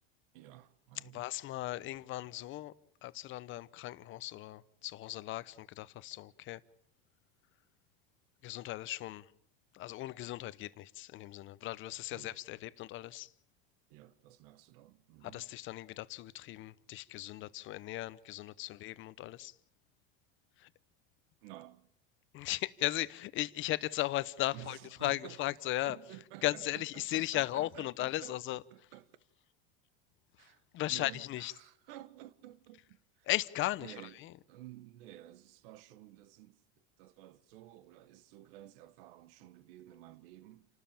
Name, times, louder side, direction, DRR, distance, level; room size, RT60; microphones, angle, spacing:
voice 1, 0.3-1.3 12.1-12.4 13.9-15.5 21.4-21.9 24.5-25.4 25.8-29.1 30.4-33.3 33.8-34.2 34.5-40.7, right 14 dB, 70° right, 1.5 m, -53 dB
voice 2, 1.1-2.7 3.0-6.6 8.4-9.3 9.7-13.3 15.3-19.5 20.6-20.7 22.3-26.0 26.4-28.6 30.4-30.5 30.7-31.5 33.3-33.9 34.2-34.3, left 16 dB, 45° left, 0.9 m, -37 dB
29.5 x 13.0 x 8.9 m
supercardioid pair, 130°, 29 cm